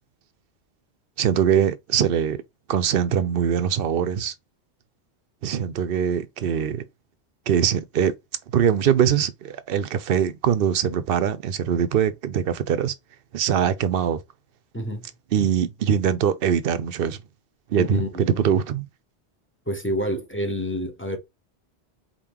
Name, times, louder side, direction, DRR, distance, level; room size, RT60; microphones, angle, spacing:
voice 1, 1.2-2.4 2.7-4.3 5.4-6.8 7.5-8.1 8.5-12.9 13.3-14.2 15.3-17.2 17.7-18.9, right 8 dB, 60° right, 0.7 m, -22 dB
voice 2, 14.7-15.1 17.8-18.5 19.7-21.2, equal, 10° left, 0.9 m, -28 dB
4.3 x 3.7 x 2.9 m
omnidirectional pair, 1.2 m